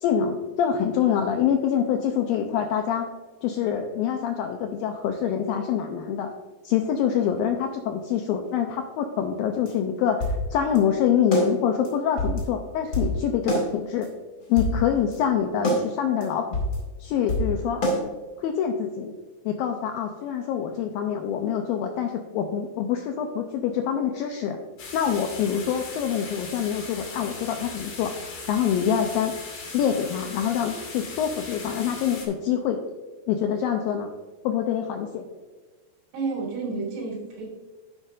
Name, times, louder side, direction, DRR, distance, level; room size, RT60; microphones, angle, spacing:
voice 1, 0.0-3.1 3.4-6.3 6.6-14.1 14.5-16.6 17.0-17.8 18.4-19.1 19.5-24.6 24.9-28.1 28.5-29.3 29.7-32.8 33.3-34.1 34.4-35.2, left 8 dB, 90° left, 4 dB, 2.1 m, -25 dB
sound 1, 9.7-9.8 10.2-10.4 10.8-10.9 11.3-11.5 11.8-11.9 12.2-12.4 12.9-13.1 13.5-13.7 14.0-14.1 14.4-14.8 15.1-15.2 15.6-15.8 16.2-16.3 16.5-16.8 17.3-17.5 17.8-18.0, equal, 35° left, 1.8 m, -24 dB
sound 2, 24.8-32.3, left 4 dB, 55° left, 3.4 m, -39 dB
voice 2, 36.1-37.4, right 4 dB, 85° right, -3 dB, 4.9 m, -30 dB
10.0 x 9.8 x 2.5 m, 1.3 s
omnidirectional pair, 4.8 m